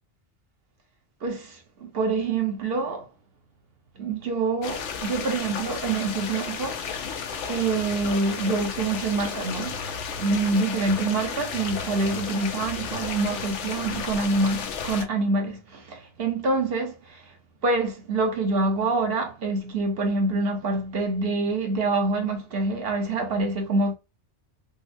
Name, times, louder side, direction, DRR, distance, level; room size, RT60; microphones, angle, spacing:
voice 1, 1.2-3.1 4.0-7.2 7.4-9.8 10.2-17.2 17.6-23.9, right 3 dB, 60° right, 1.2 m, -26 dB
sound 1, 4.6-15.0, left 6 dB, 90° left, 1.0 m, -33 dB
5.2 x 2.1 x 2.6 m
omnidirectional pair, 1.2 m